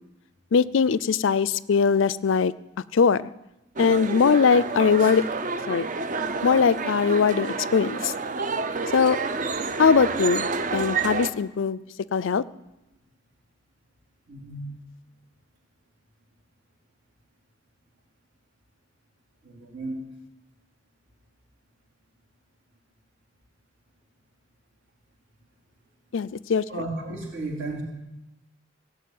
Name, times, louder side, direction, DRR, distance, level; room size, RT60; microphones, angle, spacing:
voice 1, 0.5-2.5 2.9-3.3 3.8-5.2 5.7-5.9 6.4-8.1 8.9-9.2 9.8-11.8 12.1-12.4 26.1-26.6, left 6 dB, 65° left, 19 dB, 0.4 m, -21 dB
sound 1, 3.8-11.3, right 4 dB, 40° right, 0.7 m, -29 dB
voice 2, 14.3-14.7 19.4-20.0 26.7-27.8, right 2 dB, 60° right, -2 dB, 4.0 m, -34 dB
17.0 x 7.3 x 9.4 m, 0.94 s
head